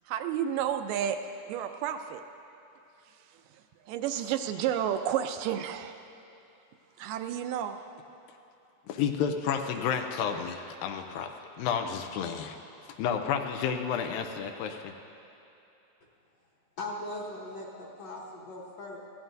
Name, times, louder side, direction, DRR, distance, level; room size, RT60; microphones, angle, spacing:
voice 1, 0.1-1.2 1.5-2.2 3.1-6.0 7.0-7.8, right 10 dB, 80° right, 7 dB, 2.1 m, -31 dB
voice 2, 8.9-11.3 11.6-12.6 13.0-14.9, left 7 dB, 90° left, 5 dB, 2.4 m, -31 dB
voice 3, 16.8-19.0, left 2 dB, 60° left, -4 dB, 1.9 m, -39 dB
20.5 x 15.0 x 2.6 m, 2.9 s
omnidirectional pair, 4.0 m